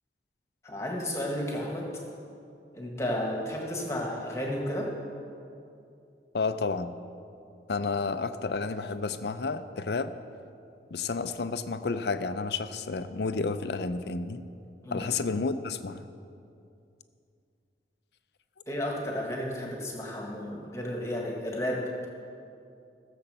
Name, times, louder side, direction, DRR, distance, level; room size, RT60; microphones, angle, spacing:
voice 1, 0.6-1.9 2.7-4.9 14.8-15.1 18.7-21.8, left 1 dB, 15° left, -1 dB, 1.6 m, -32 dB
voice 2, 6.3-7.0 7.7-10.1 10.9-14.4 14.9-16.0, left 4 dB, 75° left, 11 dB, 0.5 m, -31 dB
16.0 x 7.2 x 6.7 m, 2.5 s
head